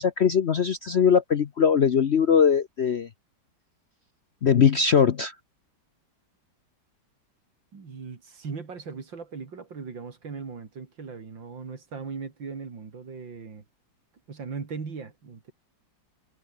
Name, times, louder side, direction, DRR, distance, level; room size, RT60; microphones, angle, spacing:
voice 1, 0.0-3.1 4.4-5.3, left 7 dB, 55° left, 0.8 m, -21 dB
voice 2, 7.7-13.6 14.3-15.5, right 5 dB, 75° right, 3.7 m, -38 dB
omnidirectional pair, 2.0 m